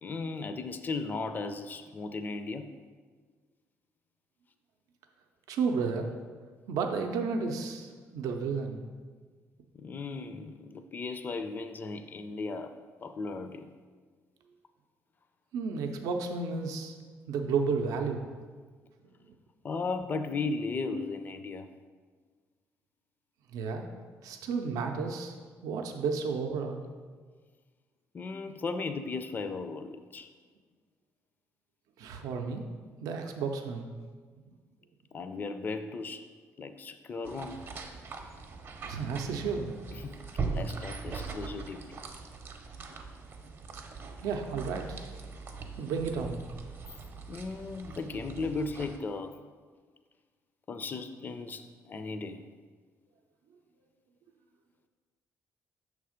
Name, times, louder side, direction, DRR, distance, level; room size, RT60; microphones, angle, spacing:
voice 1, 0.0-2.7 9.7-12.7 13.0-13.7 19.6-21.7 28.1-30.3 35.1-36.3 36.6-37.7 39.0-39.2 39.9-40.1 40.4-42.0 47.3-49.5 50.7-52.5, left 4 dB, 35° left, 10 dB, 0.4 m, -36 dB
voice 2, 5.5-6.1 6.7-8.8 15.5-17.0 17.3-18.2 23.5-23.9 24.2-25.4 25.6-26.8 32.0-32.7 33.0-33.9 38.8-39.7 44.2-45.1 45.8-46.4, right 5 dB, 85° right, 4 dB, 0.5 m, -32 dB
sound 1, 37.2-49.0, right 4 dB, 45° right, 0.6 m, -41 dB
6.2 x 3.3 x 5.0 m, 1.5 s
cardioid pair, 115°, 6 cm